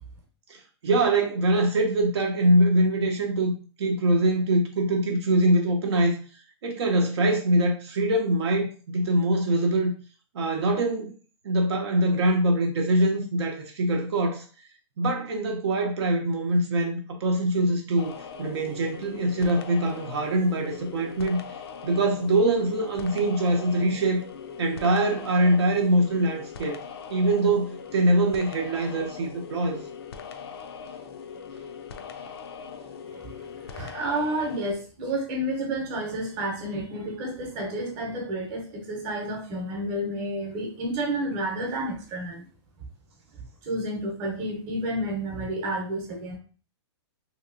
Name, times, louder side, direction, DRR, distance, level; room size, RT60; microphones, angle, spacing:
voice 1, 0.5-3.5 3.8-6.2 6.6-9.9 10.3-11.1 11.4-14.4 15.0-18.1 18.4-21.4 21.8-24.2 24.6-26.8 27.1-29.8, right 1 dB, 65° right, 0.6 m, -23 dB
sound 1, 18.0-34.7, left 6 dB, 60° left, 0.4 m, -41 dB
voice 2, 33.7-42.4 43.6-46.4, right 1 dB, 30° right, 0.9 m, -30 dB
2.9 x 2.9 x 2.5 m
hypercardioid pair, 160°, 15 cm